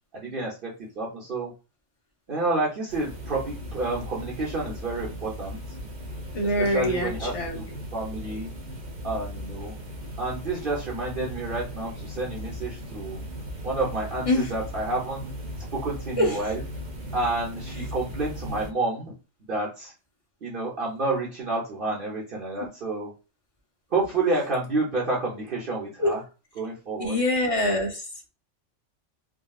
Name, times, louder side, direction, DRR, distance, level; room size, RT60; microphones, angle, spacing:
voice 1, 0.1-0.7 1.0-1.5 2.3-5.6 6.4-8.5 9.0-9.7 10.2-13.2 13.6-15.3 15.7-16.6 17.1-19.2 19.5-19.9 20.4-23.1 23.9-26.2 26.6-27.2, right 2 dB, 50° right, -4 dB, 0.9 m, -29 dB
sound 1, 2.9-18.7, equal, 90° right, 1.5 m, -37 dB
voice 2, 6.3-7.6 14.3-14.5 16.2-16.4 26.0-26.1 27.0-28.1, left 1 dB, 30° left, 0 dB, 0.8 m, -24 dB
3.6 x 2.3 x 2.3 m, 0.31 s
omnidirectional pair, 1.3 m